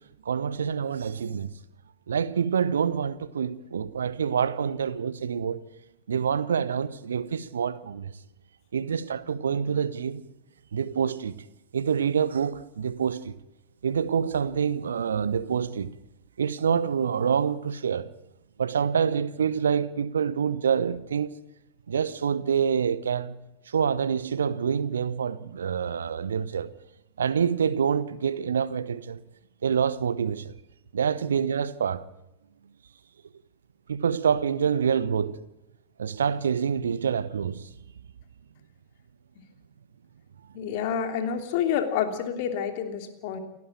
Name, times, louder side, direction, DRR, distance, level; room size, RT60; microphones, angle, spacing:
voice 1, 0.2-1.5 2.1-5.7 6.1-8.1 8.7-10.2 10.7-11.4 11.7-13.4 13.8-15.9 16.4-18.1 18.6-21.3 21.9-23.4 23.7-26.7 27.2-29.2 29.6-30.6 30.9-32.0 33.9-35.4 36.0-37.7, right 7 dB, 70° right, 0.9 m, -26 dB
voice 2, 40.5-43.4, left 8 dB, 50° left, 3.1 m, -28 dB
29.0 x 11.0 x 8.9 m
figure-of-eight pair, 90°, 0 cm